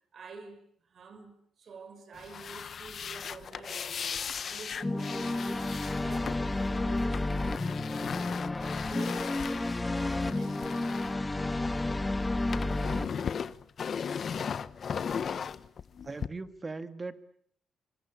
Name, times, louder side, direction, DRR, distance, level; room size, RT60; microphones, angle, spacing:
voice 1, 0.1-7.6 8.0-10.9, right 4 dB, 50° right, 5.4 m, -49 dB
sound 1, 2.1-11.9 12.2-16.3, left 7 dB, 50° left, 1.1 m, -37 dB
sound 2, 4.8-13.1, left 2 dB, 20° left, 1.9 m, -31 dB
voice 2, 16.0-17.2, right 3 dB, 25° right, 2.1 m, -39 dB
27.5 x 24.5 x 8.6 m
cardioid pair, 90°, 0 cm